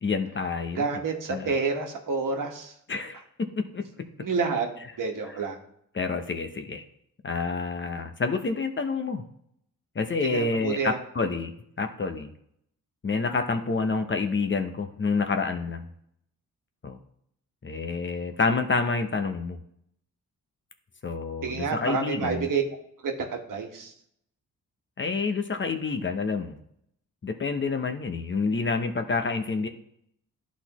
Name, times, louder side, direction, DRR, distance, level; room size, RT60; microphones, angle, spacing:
voice 1, 0.0-1.0 1.3-1.5 2.9-3.8 5.3-5.4 5.9-6.8 7.2-9.2 9.9-11.5 11.8-12.3 13.0-15.9 16.8-17.0 17.6-19.6 21.0-22.5 25.0-26.6 27.2-29.7, left 4 dB, 35° left, 7 dB, 0.8 m, -28 dB
voice 2, 0.8-2.7 4.2-4.7 5.0-5.6 10.2-11.0 21.4-22.6 23.0-23.9, right 5 dB, 65° right, 2 dB, 1.3 m, -28 dB
11.5 x 4.1 x 3.0 m, 0.71 s
cardioid pair, 65°, 35 cm